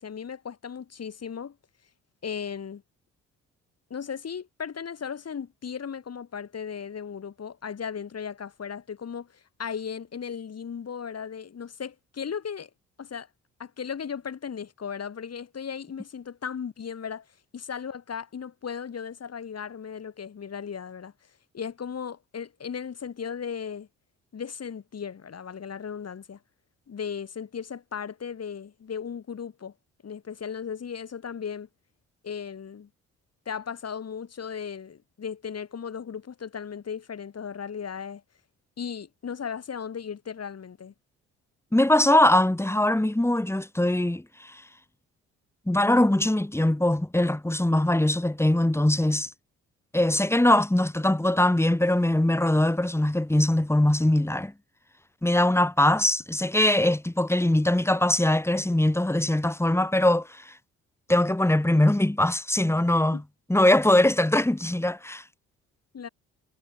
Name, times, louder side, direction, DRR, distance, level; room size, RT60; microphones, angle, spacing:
voice 1, 0.0-1.6 2.2-2.8 3.9-12.7 13.0-13.3 13.6-17.3 17.5-21.1 21.5-23.9 24.3-26.4 26.9-29.7 30.0-31.7 32.2-32.9 33.5-38.2 38.8-40.9 63.1-63.2 65.9-66.1, left 7 dB, 50° left, 6.1 m, -36 dB
voice 2, 41.7-44.6 45.7-49.3 49.9-54.5 55.2-60.5 61.1-63.2 63.5-65.2, left 1 dB, 10° left, 2.9 m, -22 dB
supercardioid pair, 70°, 33 cm